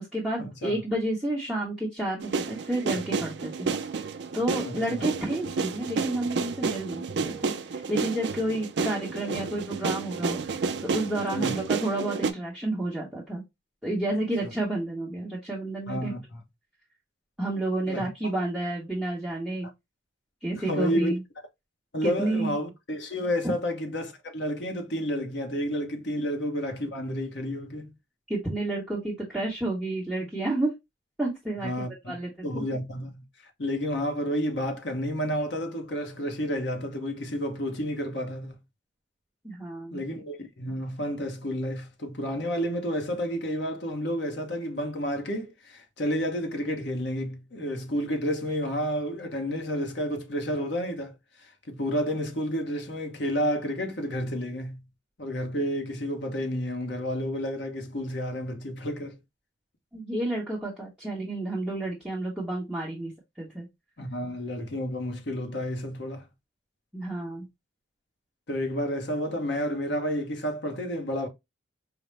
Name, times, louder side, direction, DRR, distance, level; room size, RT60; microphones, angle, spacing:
voice 1, 0.0-3.7 4.0-10.4 10.8-13.4 13.8-16.1 17.4-19.7 20.4-21.2 22.0-22.5 23.4-23.5 28.3-30.7 31.2-32.6 39.4-40.0 59.9-63.7 66.9-67.5, right 1 dB, 5° right, 0.8 m, -30 dB
sound 1, 2.2-12.3, right 4 dB, 60° right, 0.4 m, -31 dB
voice 2, 4.6-5.0 11.3-11.5 14.4-14.5 15.9-16.4 17.9-18.3 20.7-21.1 21.9-27.9 31.6-32.2 32.4-33.2 33.6-38.6 39.9-54.8 55.2-59.2 64.0-66.2 68.5-71.3, equal, 60° left, 0.9 m, -30 dB
4.9 x 2.1 x 3.1 m
head